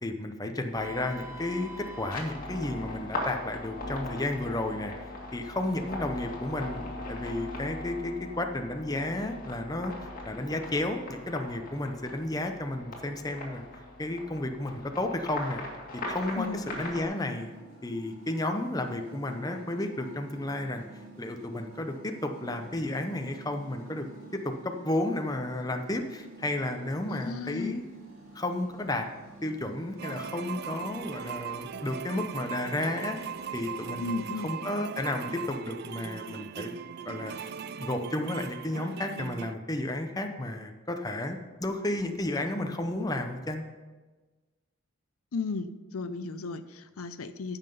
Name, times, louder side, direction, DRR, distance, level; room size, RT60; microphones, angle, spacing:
voice 1, 0.0-4.9 5.3-10.0 10.3-13.6 14.0-15.6 16.1-17.5 17.8-20.8 21.2-24.1 24.3-27.8 28.3-29.1 29.4-33.2 33.5-36.7 37.1-37.5 37.8-43.6, left 1 dB, 15° left, 5 dB, 0.7 m, -32 dB
sound 1, 0.7-17.0, left 1 dB, 40° left, 2.1 m, -40 dB
sound 2, 16.3-34.2, right 3 dB, 70° right, 2.9 m, -50 dB
voice 2, 27.1-27.8 34.0-34.5 45.3-47.6, left 4 dB, 85° left, 12 dB, 0.6 m, -35 dB
sound 3, 30.0-39.6, right 7 dB, 50° right, 0.3 m, -39 dB
14.5 x 5.8 x 5.4 m, 1.3 s
head